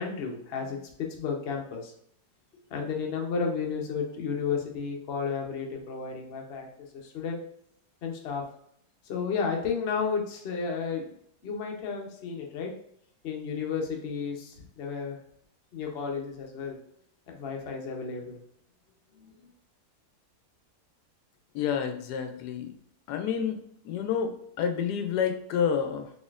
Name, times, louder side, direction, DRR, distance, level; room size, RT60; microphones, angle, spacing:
voice 1, 0.0-1.9 2.7-6.7 7.0-7.4 8.0-8.4 9.1-11.1 11.4-12.7 13.2-15.2 15.7-16.8 17.3-18.4 19.1-19.5, left 5 dB, 50° left, 1 dB, 0.8 m, -32 dB
voice 2, 21.5-22.7 23.1-23.6 23.8-26.1, left 7 dB, 80° left, 6 dB, 1.1 m, -29 dB
4.2 x 3.2 x 2.4 m, 0.68 s
omnidirectional pair, 1.7 m